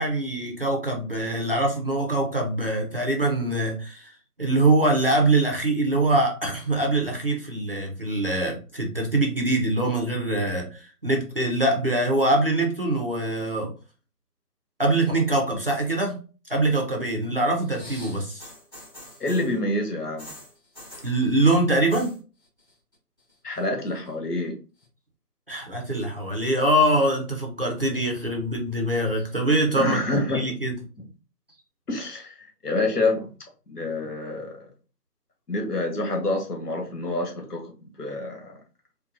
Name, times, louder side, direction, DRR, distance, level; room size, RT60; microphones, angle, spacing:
voice 1, 0.0-4.1 4.4-13.7 14.8-16.2 16.5-18.5 21.0-22.1 25.5-30.0 30.3-30.8, right 1 dB, 35° right, 1 dB, 0.6 m, -23 dB
sound 1, 17.6-19.6 20.2-21.2 21.7-22.2 22.4-22.9 23.3-24.1 24.8-24.9, left 1 dB, 15° left, 1.4 m, -44 dB
voice 2, 19.2-20.3 23.4-24.6 29.8-30.4 31.9-32.3 32.6-33.3 33.7-34.5 35.5-38.6, left 2 dB, 70° left, 2 dB, 1.2 m, -27 dB
3.8 x 2.2 x 2.6 m, 0.35 s
figure-of-eight pair, 155°, 48 cm